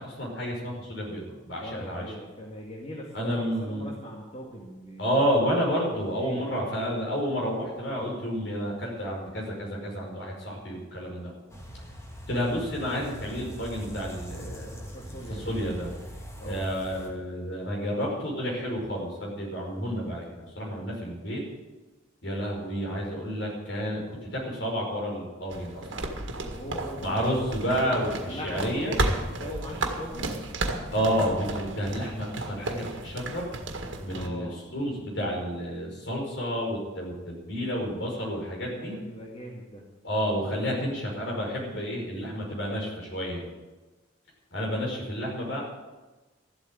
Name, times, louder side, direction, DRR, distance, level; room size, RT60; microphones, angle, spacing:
voice 1, 0.0-2.1 3.1-3.9 5.0-11.3 12.3-15.9 16.4-21.4 22.2-24.0 24.3-26.1 27.0-29.0 30.9-33.5 34.0-39.0 40.0-43.4 44.5-45.6, equal, 65° left, -2 dB, 5.4 m, -30 dB
voice 2, 1.6-5.1 6.2-6.5 14.9-15.6 16.4-16.7 25.9-29.1 29.4-30.3 34.1-34.6 38.8-39.9, equal, 30° left, -2 dB, 2.0 m, -40 dB
sound 1, 11.5-17.1, equal, 15° left, 2.3 m, -42 dB
sound 2, 25.5-34.3, right 2 dB, 75° right, 1.8 m, -33 dB
13.5 x 8.1 x 9.2 m, 1.2 s
head